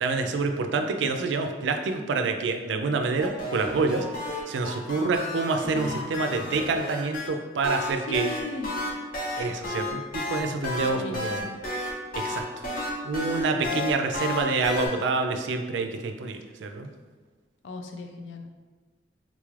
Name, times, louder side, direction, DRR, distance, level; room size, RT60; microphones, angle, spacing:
voice 1, 0.0-8.3 9.4-10.0 10.3-11.4 12.2-12.4 13.0-16.9, right 3 dB, 80° right, 6 dB, 0.4 m, -27 dB
sound 1, 3.2-7.3 7.6-14.9, left 2 dB, 50° left, 0.7 m, -32 dB
voice 2, 8.0-8.7 10.8-11.5 17.6-18.5, left 3 dB, 80° left, 6 dB, 0.4 m, -37 dB
3.8 x 2.4 x 3.1 m, 1.4 s
head